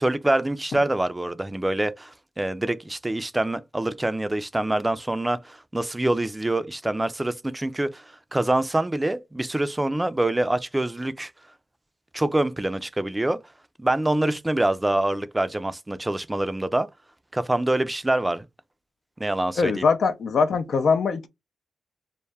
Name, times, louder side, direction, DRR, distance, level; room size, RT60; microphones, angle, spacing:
voice 1, 0.0-8.0 8.3-11.3 12.1-13.4 13.8-16.9 17.3-18.5 19.2-19.8, right 1 dB, 20° right, 0.4 m, -25 dB
voice 2, 19.6-21.3, left 5 dB, 70° left, 0.4 m, -22 dB
2.2 x 2.1 x 3.3 m
supercardioid pair, 45°, 0 cm